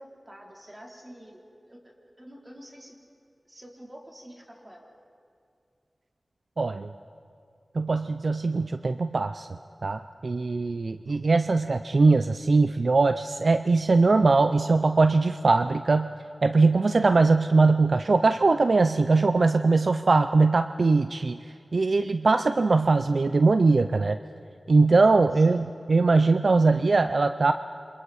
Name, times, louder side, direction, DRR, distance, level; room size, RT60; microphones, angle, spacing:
voice 1, 0.0-1.4 1.6-1.8 2.2-3.0 3.5-4.9 25.4-25.6, equal, 25° right, -1 dB, 3.7 m, -47 dB
voice 2, 6.6-6.9 7.7-9.5 9.8-16.1 16.4-21.4 21.7-24.2 24.7-27.5, right 3 dB, 70° right, 9 dB, 0.5 m, -21 dB
28.0 x 26.0 x 4.3 m, 2.4 s
wide cardioid pair, 60°, 0 cm